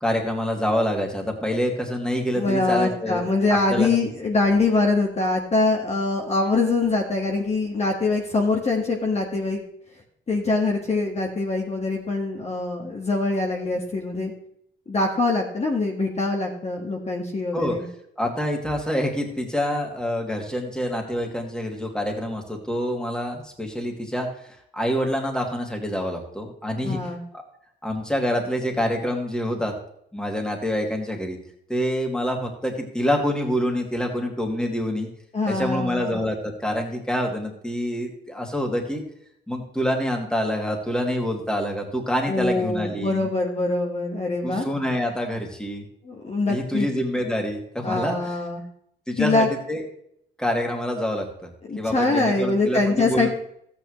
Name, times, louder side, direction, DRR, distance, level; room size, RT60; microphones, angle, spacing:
voice 1, 0.0-3.2 3.7-3.9 17.5-17.8 18.2-27.4 27.8-29.7 30.1-31.4 31.7-35.1 35.5-39.0 39.5-43.3 44.4-45.8 46.5-48.4 49.1-49.8 50.4-51.5 51.8-53.3, equal, 5° left, 1 dB, 2.4 m, -26 dB
voice 2, 2.3-9.6 10.3-14.3 14.9-17.8 26.8-27.2 35.3-36.1 42.3-44.7 46.0-46.9 47.8-48.6 49.2-49.5 51.7-53.3, left 3 dB, 35° left, 0 dB, 1.7 m, -23 dB
13.5 x 8.8 x 3.2 m, 0.71 s
cardioid pair, 90°, 20 cm